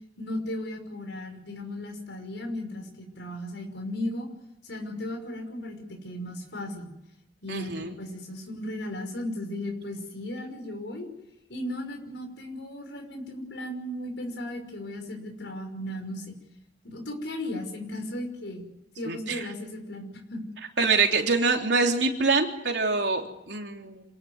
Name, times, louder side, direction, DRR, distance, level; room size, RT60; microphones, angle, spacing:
voice 1, 0.2-4.3 4.6-6.9 7.4-11.1 11.5-16.3 16.8-18.6 19.0-20.4, left 1 dB, 85° left, 3 dB, 5.8 m, -36 dB
voice 2, 7.5-7.9 19.0-19.4 20.8-24.0, right 4 dB, 75° right, 2 dB, 3.4 m, -25 dB
27.5 x 17.0 x 9.5 m, 0.88 s
head